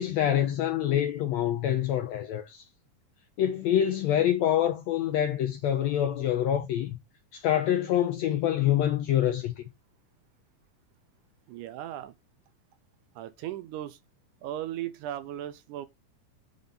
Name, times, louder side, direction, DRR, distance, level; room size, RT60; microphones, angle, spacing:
voice 1, 0.0-2.6 3.4-7.0 7.3-9.5, left 11 dB, 80° left, 1.5 m, -26 dB
voice 2, 11.5-12.1 13.2-14.0 14.4-15.9, right 12 dB, 80° right, 2.0 m, -37 dB
8.7 x 4.0 x 5.4 m
omnidirectional pair, 3.9 m